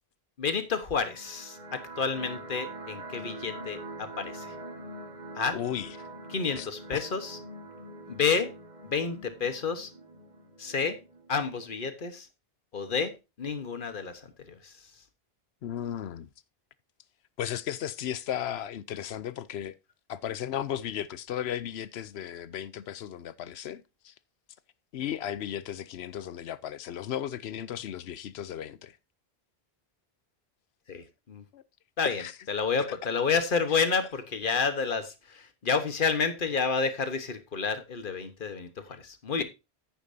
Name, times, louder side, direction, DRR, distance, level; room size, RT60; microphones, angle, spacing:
voice 1, 0.4-4.5 5.4-5.6 6.3-7.4 8.1-8.5 8.8-9.9 10.6-11.0 11.3-12.3 12.7-14.7 30.9-31.4 32.0-32.2 32.5-39.4, left 5 dB, 55° left, 1.4 m, -30 dB
sound 1, 0.9-11.9, right 1 dB, 45° right, 2.0 m, -44 dB
voice 2, 5.5-6.1 6.5-7.0 15.6-16.3 17.4-19.8 20.1-24.1 24.9-29.0 31.5-31.6 32.0-32.4 32.9-33.0 39.4-39.5, left 10 dB, 80° left, 0.9 m, -35 dB
10.0 x 9.0 x 2.7 m
omnidirectional pair, 1.1 m